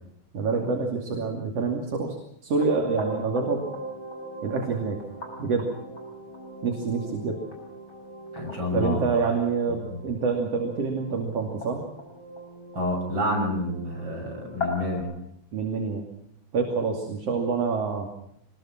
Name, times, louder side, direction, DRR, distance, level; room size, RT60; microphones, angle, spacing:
voice 1, 0.3-2.2 2.4-3.6 4.4-5.0 5.4-5.7 6.6-7.4 8.7-11.8 15.5-16.0 16.5-18.1, right 4 dB, 55° right, 2 dB, 3.7 m, -26 dB
sound 1, 2.6-15.0, left 1 dB, 40° left, 6.8 m, -39 dB
voice 2, 8.3-9.2 9.9-10.0 12.8-15.1, left 1 dB, 40° right, 1 dB, 7.5 m, -28 dB
25.5 x 21.0 x 6.0 m, 0.75 s
omnidirectional pair, 3.4 m